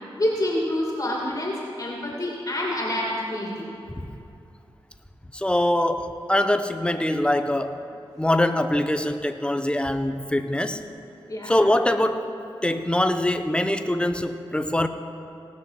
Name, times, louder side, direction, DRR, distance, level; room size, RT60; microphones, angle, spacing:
voice 1, 0.1-3.7 11.3-11.6, left 1 dB, 35° left, -3 dB, 2.4 m, -27 dB
voice 2, 5.3-7.8 8.2-10.8 11.5-12.3 12.6-14.9, left 1 dB, 10° left, 8 dB, 0.8 m, -23 dB
18.5 x 6.3 x 5.7 m, 2.5 s
cardioid pair, 50°, 10 cm